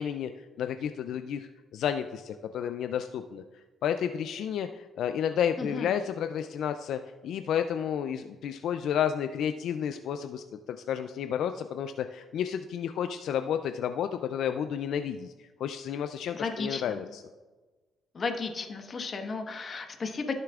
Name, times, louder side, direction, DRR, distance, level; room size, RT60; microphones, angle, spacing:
voice 1, 0.0-17.2, left 8 dB, 75° left, 8 dB, 0.3 m, -31 dB
voice 2, 5.6-5.9 16.3-17.0 18.1-20.4, left 4 dB, 45° left, 4 dB, 1.2 m, -34 dB
14.5 x 6.6 x 2.4 m, 1.3 s
cardioid pair, 90°, 0 cm